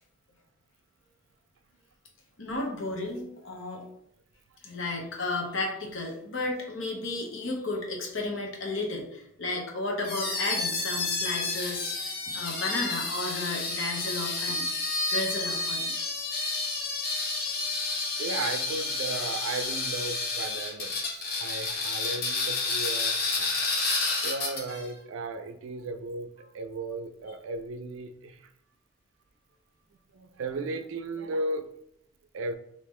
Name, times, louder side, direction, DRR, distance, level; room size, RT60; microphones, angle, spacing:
voice 1, 2.4-3.8 4.6-14.6 15.1-16.0 18.1-18.2 24.0-24.2, left 2 dB, 85° left, 0 dB, 0.8 m, -33 dB
sound 1, 10.0-24.9, left 3 dB, 50° left, 0.7 m, -30 dB
voice 2, 18.2-23.6 24.2-26.3 26.5-28.4 30.1-31.7 32.3-32.5, right 2 dB, 80° right, 8 dB, 0.4 m, -35 dB
3.6 x 2.8 x 3.1 m, 0.75 s
head